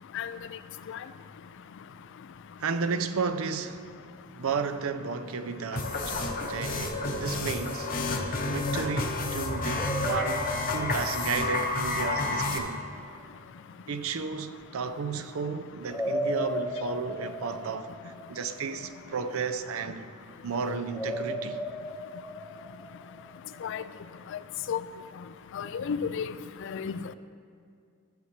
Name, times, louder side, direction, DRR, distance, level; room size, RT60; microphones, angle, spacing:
voice 1, 2.6-3.9 4.4-7.9 8.4-12.8 13.9-20.1 20.4-21.6, right 5 dB, 70° right, 0.5 m, -33 dB
sound 1, 5.7-12.6, left 2 dB, 45° left, 0.9 m, -30 dB
sound 2, 9.8-12.7 15.9-19.2 20.9-23.7, equal, 5° left, 0.5 m, -36 dB
voice 2, 25.5-26.3 26.6-27.0, left 7 dB, 60° left, 0.3 m, -32 dB
14.5 x 7.3 x 3.2 m
head